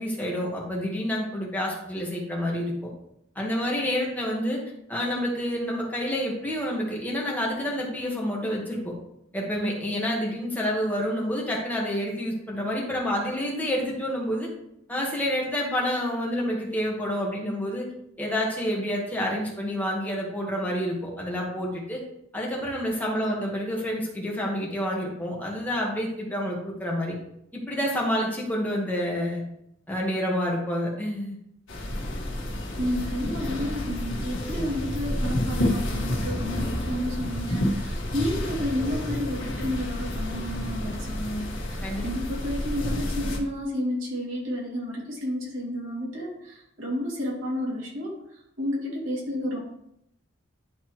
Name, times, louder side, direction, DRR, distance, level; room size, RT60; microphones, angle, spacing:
voice 1, 0.0-2.9 3.3-4.6 4.9-8.9 9.3-14.5 14.9-17.9 18.2-22.0 22.3-27.2 27.5-29.4 29.9-31.4 41.8-42.0, equal, 10° left, -3 dB, 1.6 m, -28 dB
voice 2, 23.0-23.4 32.8-49.6, left 1 dB, 85° right, -4 dB, 2.6 m, -31 dB
sound 1, 31.7-43.4, left 1 dB, 75° left, 1.6 m, -30 dB
10.5 x 4.2 x 3.1 m, 0.79 s
head